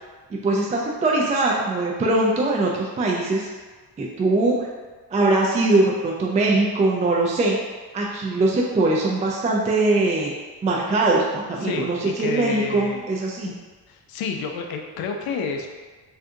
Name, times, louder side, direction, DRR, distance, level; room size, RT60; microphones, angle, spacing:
voice 1, 0.3-3.5 4.0-4.7 5.1-7.6 7.9-10.3 10.6-13.5, right 2 dB, 20° right, -2 dB, 0.3 m, -21 dB
voice 2, 11.6-13.1 13.9-15.7, left 5 dB, 75° left, 3 dB, 0.5 m, -29 dB
2.6 x 2.4 x 3.5 m, 1.4 s
cardioid pair, 110°, 37 cm